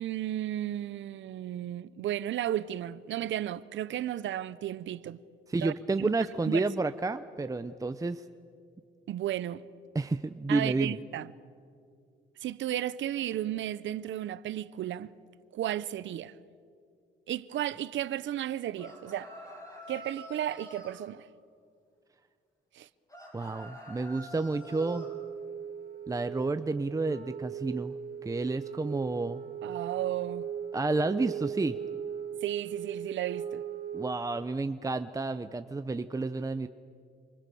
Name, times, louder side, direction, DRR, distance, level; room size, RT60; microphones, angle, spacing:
voice 1, 0.0-5.2 5.6-6.1 6.5-6.6 9.1-9.6 10.5-11.3 12.4-15.1 15.5-16.3 17.3-19.3 19.9-21.3 22.7-22.9 29.6-30.5 32.4-33.6, right 12 dB, 70° right, 0.9 m, -34 dB
voice 2, 5.5-8.2 9.9-11.0 23.3-25.1 26.1-27.9 28.2-29.4 30.7-31.8 33.9-36.7, right 3 dB, 15° right, 0.7 m, -30 dB
sound 1, 18.8-21.0 23.1-25.1, equal, 15° left, 7.8 m, -47 dB
Wind instrument woodwind instrument, 24.6-34.3, right 8 dB, 50° right, 2.5 m, -39 dB
27.5 x 26.0 x 7.0 m
cardioid pair, 90°, 20 cm